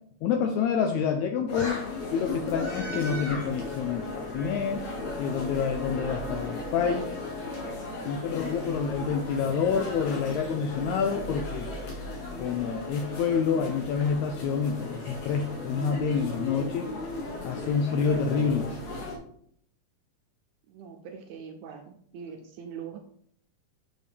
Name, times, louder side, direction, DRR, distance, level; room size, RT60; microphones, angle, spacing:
voice 1, 0.2-1.8 2.1-4.8 5.2-7.1 8.1-11.7 12.4-16.9 17.4-18.7, left 6 dB, 85° left, 4 dB, 1.7 m, -28 dB
sound 1, 1.5-19.2, left 2 dB, 60° left, 2.1 m, -36 dB
voice 2, 20.7-23.0, right 7 dB, 80° right, 4 dB, 1.7 m, -42 dB
6.9 x 4.2 x 3.3 m, 0.66 s
omnidirectional pair, 3.8 m